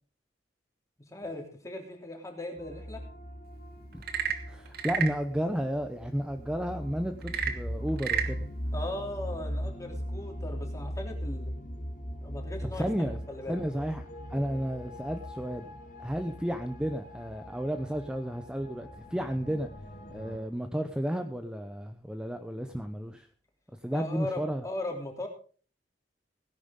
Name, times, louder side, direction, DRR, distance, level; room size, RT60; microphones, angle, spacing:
voice 1, 1.1-3.0 8.7-11.5 12.2-12.9 13.3-13.6 23.9-25.3, left 1 dB, 20° left, 1 dB, 3.2 m, -38 dB
sound 1, 2.6-20.4, equal, 50° left, 2.1 m, -39 dB
Frog / Percussion / Wood, 3.9-5.2 7.2-8.4, right 8 dB, 60° right, 1.4 m, -31 dB
voice 2, 4.5-8.5 12.7-13.2 13.5-14.0 14.3-19.7 20.1-23.3 23.8-24.6, equal, 5° right, 7 dB, 0.7 m, -32 dB
17.5 x 11.0 x 3.7 m, 0.40 s
head